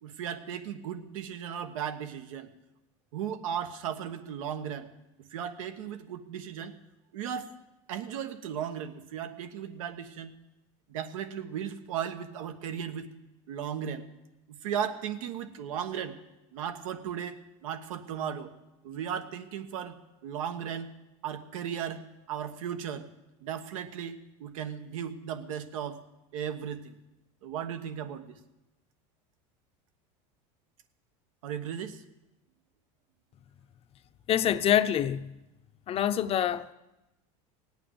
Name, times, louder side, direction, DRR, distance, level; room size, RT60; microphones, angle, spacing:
voice 1, 0.0-2.5 3.1-4.9 5.3-6.8 7.1-7.6 7.9-10.3 10.9-13.1 13.5-14.1 14.6-16.2 16.5-18.5 18.8-20.0 20.2-20.9 21.2-23.1 23.4-26.0 26.3-27.0 27.4-28.3 31.4-32.0, right 8 dB, 85° right, 1.2 m, -36 dB
voice 2, 34.3-35.3 35.9-36.7, left 10 dB, 35° left, 0.7 m, -26 dB
17.5 x 8.9 x 7.7 m
supercardioid pair, 120°, 17 cm